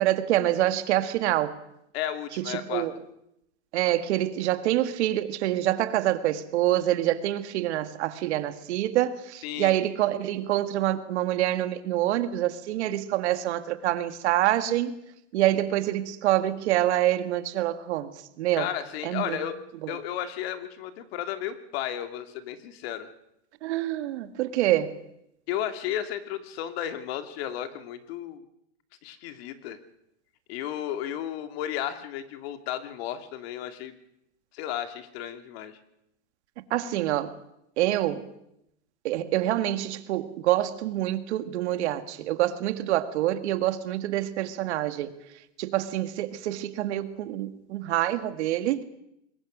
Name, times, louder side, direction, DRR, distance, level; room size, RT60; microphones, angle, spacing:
voice 1, 0.0-1.5 2.4-3.0 3.7-14.9 15.3-18.1 18.4-18.7 19.0-19.4 19.8-20.0 23.6-25.0 36.7-37.3 37.8-38.3 39.0-45.1 45.6-48.8, right 13 dB, 65° right, 1.9 m, -26 dB
voice 2, 1.9-2.9 9.4-9.7 18.5-19.6 19.9-23.1 25.5-28.4 29.0-29.8 30.5-33.9 34.5-35.8, left 11 dB, 55° left, 2.4 m, -33 dB
25.5 x 21.5 x 6.2 m
supercardioid pair, 140°, 37 cm